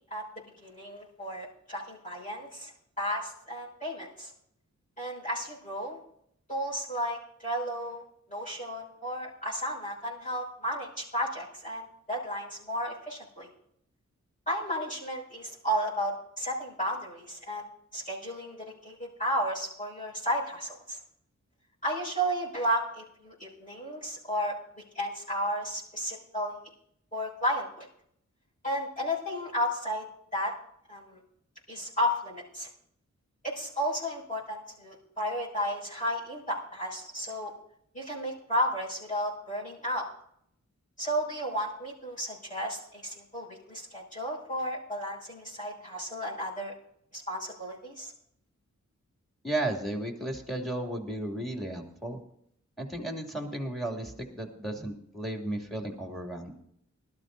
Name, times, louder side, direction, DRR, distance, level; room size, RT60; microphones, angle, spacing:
voice 1, 0.6-2.7 3.0-4.3 5.0-6.0 6.5-13.5 14.5-17.6 17.9-18.6 18.8-21.0 21.8-24.6 24.9-26.6 27.1-27.9 28.6-30.0 30.3-30.5 30.9-31.2 31.7-32.7 33.4-37.5 37.9-40.1 41.0-46.7 47.1-48.1, equal, 25° left, -7 dB, 6.2 m, -33 dB
voice 2, 49.4-52.2 52.8-56.5, right 1 dB, ahead, 2 dB, 2.7 m, -34 dB
20.0 x 13.0 x 2.7 m, 0.70 s
wide cardioid pair, 60°, 30 cm